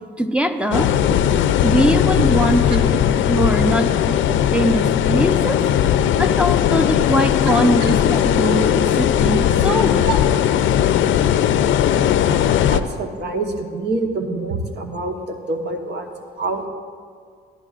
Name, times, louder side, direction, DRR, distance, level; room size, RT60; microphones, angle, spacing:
voice 1, 0.2-0.9 1.6-5.6 6.2-10.1, equal, 5° right, 7 dB, 0.8 m, -21 dB
sound 1, 0.7-12.8, left 10 dB, 75° left, 0.5 m, -18 dB
voice 2, 11.6-12.4 12.7-16.1 16.4-16.7, right 3 dB, 60° right, 3 dB, 1.2 m, -26 dB
16.0 x 10.5 x 2.5 m, 2.1 s
cardioid pair, 90°, 20 cm